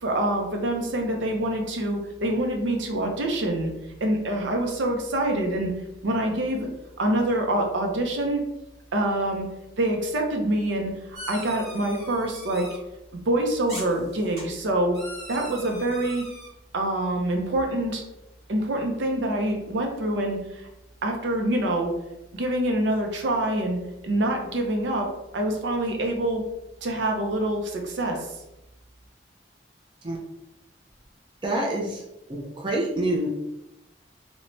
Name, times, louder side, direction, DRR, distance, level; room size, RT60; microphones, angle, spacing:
voice 1, 0.0-3.7 4.0-5.7 6.0-6.7 7.0-8.4 8.9-9.5 9.8-10.9 11.3-12.7 13.1-15.0 15.3-16.2 16.7-18.0 18.5-20.7 21.0-21.9 22.3-23.8 24.0-25.1 25.3-26.4 26.8-28.3, right 1 dB, 80° right, 2 dB, 0.5 m, -25 dB
sound 1, 11.1-12.8 13.7-14.4 14.9-16.5, equal, 55° right, 1.2 m, -40 dB
voice 2, 31.4-32.0 32.3-33.3, right 1 dB, 25° right, -2 dB, 0.4 m, -27 dB
3.0 x 2.1 x 2.6 m, 0.89 s
head